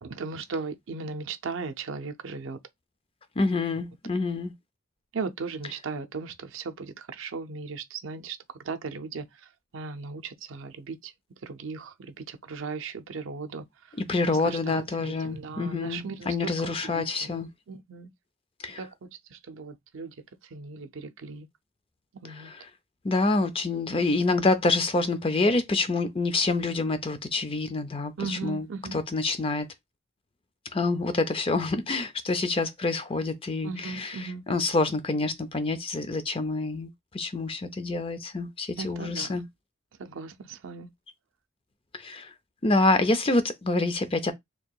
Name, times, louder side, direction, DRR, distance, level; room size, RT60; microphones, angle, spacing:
voice 1, 0.0-2.6 5.1-11.1 11.4-14.0 14.3-18.1 18.8-20.1 20.4-21.5 22.1-22.5 28.2-29.0 33.6-34.4 38.8-39.4 40.0-40.9, right 4 dB, 75° right, 0.6 m, -37 dB
voice 2, 3.4-4.5 14.1-17.5 18.6-18.8 22.4-22.5 23.0-28.7 29.1-29.7 30.7-34.1 34.5-36.9 37.1-39.4 41.9-42.3 42.6-44.3, left 3 dB, 25° left, 0.5 m, -27 dB
4.5 x 2.9 x 2.3 m
head